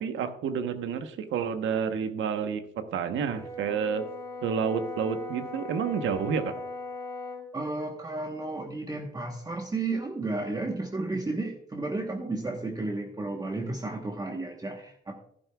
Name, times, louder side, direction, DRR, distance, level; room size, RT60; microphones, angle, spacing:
voice 1, 0.0-2.6 2.9-4.0 4.4-6.5, right 7 dB, 80° right, 9 dB, 1.0 m, -29 dB
Brass instrument, 3.2-7.5, left 3 dB, 15° left, 1.3 m, -39 dB
voice 2, 7.5-15.1, right 2 dB, 20° right, 2 dB, 1.1 m, -33 dB
11.5 x 10.5 x 2.3 m, 0.73 s
cardioid pair, 90°, 20 cm